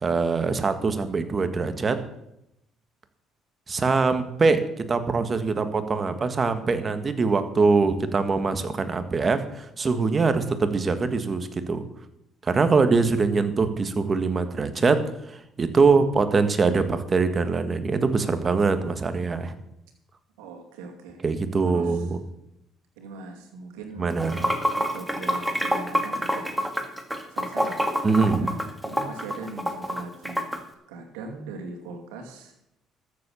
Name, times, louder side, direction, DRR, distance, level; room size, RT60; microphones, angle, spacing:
voice 1, 0.0-2.0 3.7-11.8 12.4-19.5 21.2-22.1 24.0-24.5 28.0-28.5, right 4 dB, 35° right, 10 dB, 1.6 m, -23 dB
voice 2, 20.4-21.2 21.7-22.1 23.0-26.5 27.3-27.9 28.4-30.5 30.9-32.5, right 3 dB, 90° right, 2 dB, 2.5 m, -40 dB
Water / Sink (filling or washing), 24.1-30.6, equal, 5° right, 2.1 m, -27 dB
13.5 x 7.5 x 7.0 m, 0.83 s
supercardioid pair, 70°, 0 cm